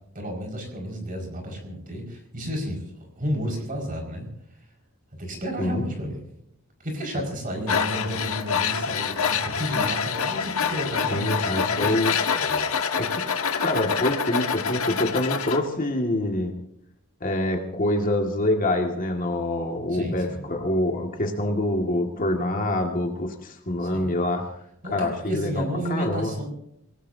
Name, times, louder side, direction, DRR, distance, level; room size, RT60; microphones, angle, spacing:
voice 1, 0.1-4.3 5.2-6.2 6.8-12.7 19.9-20.4 23.8-24.1 24.8-26.5, equal, 40° right, 1 dB, 5.5 m, -32 dB
Tools, 7.7-15.6, left 6 dB, 75° left, 1.3 m, -26 dB
voice 2, 11.1-12.2 12.9-13.2 13.6-16.5 17.2-24.4 24.9-26.3, left 1 dB, 40° left, 2 dB, 2.1 m, -26 dB
27.0 x 18.5 x 2.8 m, 0.75 s
head